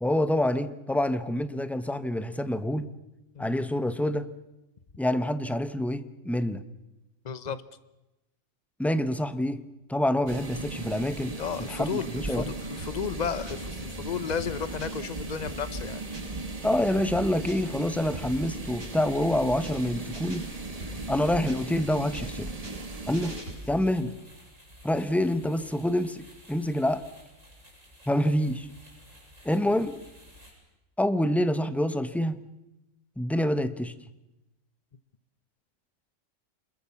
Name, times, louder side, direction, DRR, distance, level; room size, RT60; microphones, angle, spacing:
voice 1, 0.0-2.9 3.4-4.3 5.0-6.6 8.8-9.6 9.9-11.3 11.7-12.5 16.6-20.5 21.1-22.5 23.1-23.4 23.7-24.1 24.8-27.0 28.1-28.7 29.4-30.0 31.0-32.5 33.2-33.9, left 1 dB, ahead, 12 dB, 0.8 m, -27 dB
voice 2, 7.2-7.6 11.4-16.0 20.9-21.1, left 7 dB, 35° left, 14 dB, 1.0 m, -33 dB
sound 1, 10.3-23.4, right 2 dB, 30° right, 1.8 m, -37 dB
sound 2, 12.8-13.8 14.1-16.5 16.8-19.2 19.5-19.8 20.1-21.8 22.1-23.9, equal, 75° right, 8.2 m, -42 dB
sound 3, 15.3-30.5, equal, 90° right, 8.5 m, -53 dB
27.0 x 21.5 x 7.1 m, 0.97 s
omnidirectional pair, 1.3 m